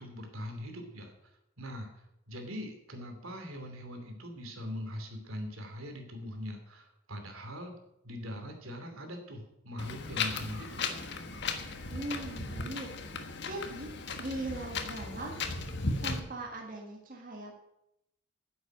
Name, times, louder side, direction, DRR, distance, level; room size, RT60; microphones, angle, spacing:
voice 1, 0.0-1.9 2.3-7.8 8.0-10.8, left 1 dB, 85° right, 4 dB, 3.0 m, -42 dB
Wind, 9.8-16.2, left 4 dB, 55° left, 1.4 m, -36 dB
voice 2, 11.9-12.9 13.1-13.9 14.2-15.4 16.0-17.5, right 1 dB, 40° right, 0 dB, 1.7 m, -40 dB
10.0 x 8.0 x 8.9 m, 0.86 s
head